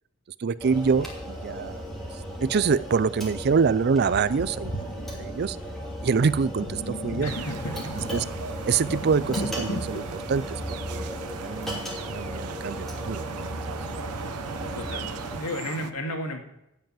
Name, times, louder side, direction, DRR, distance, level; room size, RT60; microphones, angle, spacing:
voice 1, 0.4-1.8 2.4-4.9 5.2-5.6 6.0-7.3 8.1-8.2 8.6-10.6 10.9-13.2 13.7-13.8, right 5 dB, 45° right, 17 dB, 0.4 m, -25 dB
sound 1, 0.6-15.4, equal, ahead, 2.6 m, -36 dB
Sink (filling or washing), 3.4-3.5 4.1-11.4, left 1 dB, 60° left, 1.3 m, -37 dB
voice 2, 7.2-8.0 14.7-16.4, left 1 dB, 85° left, 3 dB, 2.2 m, -34 dB
sound 2, 7.2-15.9, right 5 dB, 90° right, 0.7 m, -38 dB
16.5 x 5.5 x 7.4 m, 0.84 s
head